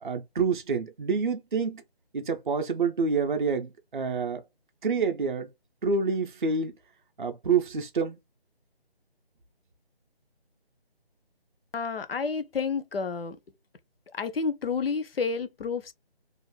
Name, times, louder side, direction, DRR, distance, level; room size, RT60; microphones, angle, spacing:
voice 1, 0.0-1.8 2.1-4.4 4.8-5.5 5.8-6.7 7.2-8.2, right 5 dB, 55° right, 0.4 m, -27 dB
voice 2, 11.7-13.4 14.1-15.9, left 5 dB, 65° left, 0.5 m, -30 dB
2.4 x 2.1 x 3.2 m
figure-of-eight pair, 175°, 31 cm